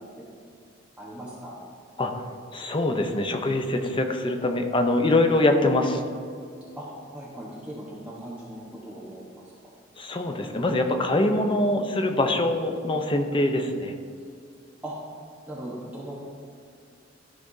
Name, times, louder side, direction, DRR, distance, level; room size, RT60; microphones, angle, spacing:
voice 1, 1.0-1.5 6.8-9.7 14.8-14.9 15.5-16.1, right 1 dB, 10° right, -7 dB, 1.2 m, -39 dB
voice 2, 2.5-6.0 10.0-13.9, left 2 dB, 25° left, 5 dB, 0.7 m, -24 dB
13.5 x 5.8 x 2.7 m, 2.4 s
head